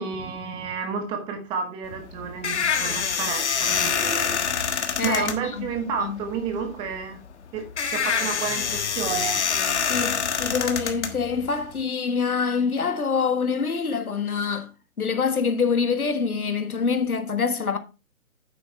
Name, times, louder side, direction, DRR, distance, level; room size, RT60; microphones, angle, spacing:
voice 1, 0.0-4.3 5.0-7.2 7.5-7.7 7.9-9.4, right 6 dB, 10° right, 1.1 m, -30 dB
sound 1, 1.8-11.8, left 7 dB, 50° left, 1.5 m, -26 dB
voice 2, 5.0-5.7 6.0-6.2 9.9-14.7 15.0-17.8, left 5 dB, 85° left, 1.7 m, -25 dB
10.0 x 7.7 x 3.3 m
figure-of-eight pair, 145°, 43 cm